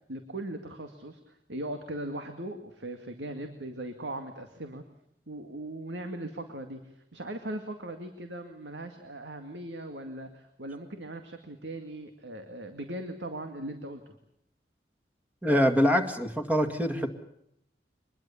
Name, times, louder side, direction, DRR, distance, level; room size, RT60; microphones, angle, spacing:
voice 1, 0.1-4.8 5.3-14.1, right 1 dB, 85° right, 6 dB, 2.1 m, -39 dB
voice 2, 15.4-17.1, equal, 10° right, 6 dB, 2.0 m, -24 dB
24.5 x 21.5 x 7.1 m, 0.77 s
head